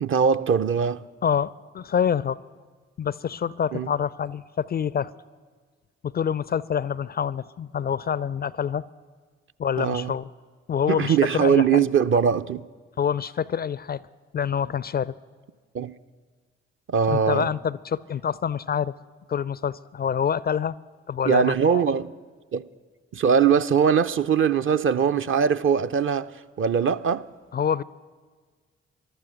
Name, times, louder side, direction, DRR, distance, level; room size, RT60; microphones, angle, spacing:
voice 1, 0.0-1.0 3.7-3.9 9.8-10.1 10.9-12.6 15.7-15.9 16.9-17.5 21.2-22.1 22.5-22.6 23.1-26.3 26.6-27.3, right 7 dB, 40° right, 0.5 m, -21 dB
voice 2, 1.2-2.4 3.0-5.1 6.0-8.8 9.6-10.3 10.7-11.8 13.0-14.0 14.3-15.1 17.1-18.9 19.3-20.8 21.1-21.8 27.5-27.8, left 8 dB, 35° left, 0.4 m, -26 dB
14.5 x 12.0 x 6.4 m
hypercardioid pair, 40°, 31 cm